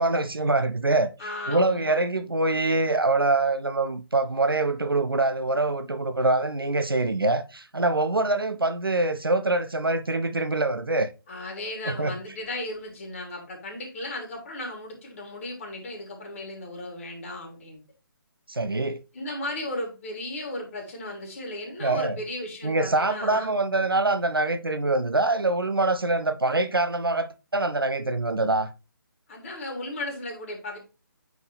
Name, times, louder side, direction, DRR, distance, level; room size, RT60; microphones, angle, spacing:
voice 1, 0.0-1.1 1.5-11.1 11.8-12.1 18.5-19.0 21.8-22.2 22.6-28.7, right 2 dB, 80° right, 0.9 m, -24 dB
voice 2, 1.2-2.0 11.3-17.8 19.1-23.5 29.3-30.8, left 1 dB, 35° left, 3.3 m, -35 dB
9.3 x 4.4 x 3.3 m
figure-of-eight pair, 145°, 12 cm